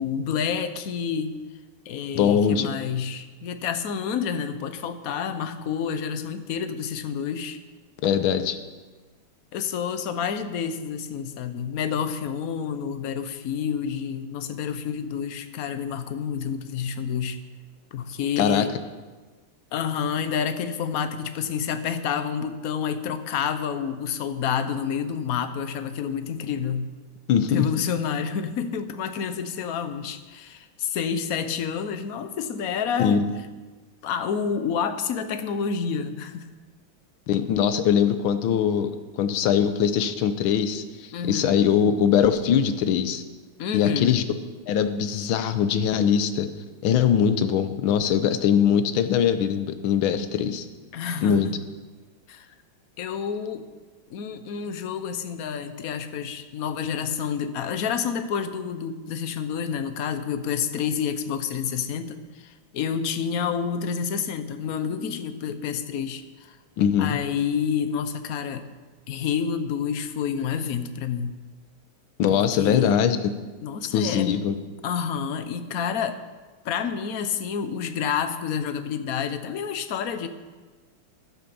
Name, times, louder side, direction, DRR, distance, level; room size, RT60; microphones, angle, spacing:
voice 1, 0.0-1.3 1.9-7.6 9.5-17.4 17.9-18.7 19.7-26.9 27.4-33.2 34.0-36.5 41.1-41.6 43.6-44.2 50.9-51.5 52.3-52.5 53.0-53.7 54.1-66.6 67.0-68.7 69.1-71.4 72.3-72.9 73.6-74.5 74.8-76.2 76.6-80.3, left 7 dB, 60° left, 10 dB, 1.0 m, -29 dB
voice 2, 2.1-2.7 8.0-8.6 18.4-18.7 27.3-27.7 33.0-33.2 37.3-43.2 43.7-44.2 44.7-46.5 46.8-50.7 51.2-51.5 66.8-67.2 72.2-73.2 73.9-74.6, left 8 dB, 75° left, 10 dB, 1.6 m, -22 dB
11.0 x 10.0 x 7.0 m, 1.3 s
omnidirectional pair, 2.3 m